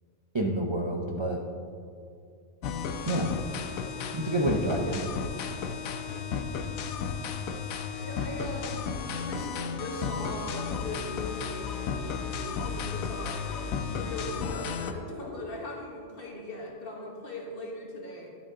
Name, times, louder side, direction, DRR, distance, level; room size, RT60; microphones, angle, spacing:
voice 1, 0.3-1.4 3.0-3.3 4.1-5.0, right 1 dB, 40° right, 1 dB, 0.4 m, -28 dB
sound 1, 2.6-14.9, left 6 dB, 80° left, 1.1 m, -34 dB
voice 2, 5.6-6.3 8.0-8.9 9.2-12.0 12.3-18.3, left 1 dB, 45° left, -1 dB, 1.5 m, -40 dB
11.0 x 7.4 x 3.7 m, 2.4 s
omnidirectional pair, 1.4 m